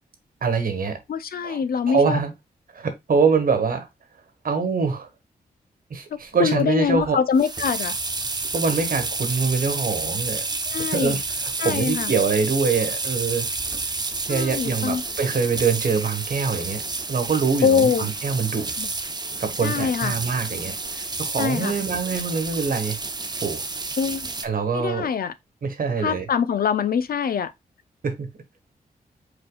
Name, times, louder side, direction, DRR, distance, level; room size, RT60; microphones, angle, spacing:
voice 1, 0.4-1.0 1.4-1.6 1.9-2.3 2.7-3.9 4.4-5.1 5.9-7.2 8.5-10.4 10.9-11.2 11.6-13.5 14.3-16.8 17.1-18.7 19.4-23.0 23.4-23.6 24.4-25.1 25.6-26.3 28.0-28.3, right 5 dB, 65° right, 1.3 m, -24 dB
voice 2, 1.1-2.2 6.1-8.0 10.7-11.2 11.6-12.1 14.3-15.0 17.6-18.1 18.8-18.9 19.6-20.1 21.4-21.8 24.0-24.3 24.7-25.3 26.0-27.5, left 6 dB, 70° left, 0.6 m, -24 dB
sound 1, 7.0-24.5, right 3 dB, 25° right, 0.7 m, -30 dB
5.1 x 4.4 x 2.3 m
cardioid pair, 75°, 16 cm